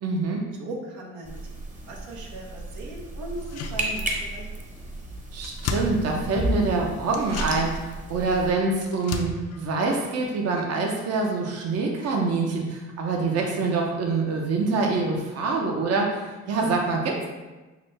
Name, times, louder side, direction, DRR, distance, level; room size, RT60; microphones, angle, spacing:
voice 1, 0.0-0.4 5.3-17.3, right 3 dB, 55° right, 1 dB, 0.7 m, -25 dB
voice 2, 0.6-1.4 1.9-4.5, right 1 dB, 85° right, -1 dB, 0.8 m, -38 dB
sound 1, 1.2-8.5, right 1 dB, 25° right, 0.8 m, -33 dB
sound 2, 3.3-4.5 4.8-4.9 5.1-6.6 7.1-10.8 11.1-11.2, left 4 dB, 55° left, 0.5 m, -36 dB
5.9 x 2.2 x 3.2 m, 1.2 s
cardioid pair, 90°, 30 cm